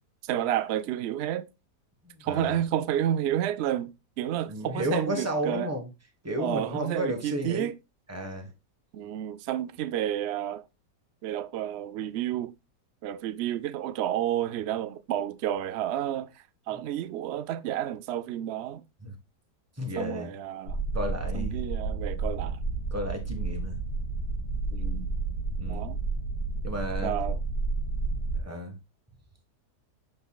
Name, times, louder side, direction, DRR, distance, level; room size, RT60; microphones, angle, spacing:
voice 1, 0.2-1.5 2.2-5.7 6.4-7.7 8.9-10.6 11.2-12.5 13.0-16.3 16.7-18.8 20.0-20.8 21.3-22.6 24.7-25.1 25.7-26.0 27.0-27.4, right 11 dB, 85° right, 0.5 m, -30 dB
voice 2, 2.0-2.6 4.5-5.9 6.2-7.7 8.1-8.5 19.0-19.2 19.8-20.3 20.9-21.6 22.9-23.8 25.6-25.9 26.6-27.2 28.3-28.8, equal, 10° right, 1.3 m, -32 dB
sound 1, 20.6-28.4, right 3 dB, 70° left, 2.3 m, -31 dB
7.9 x 5.2 x 2.4 m
omnidirectional pair, 1.8 m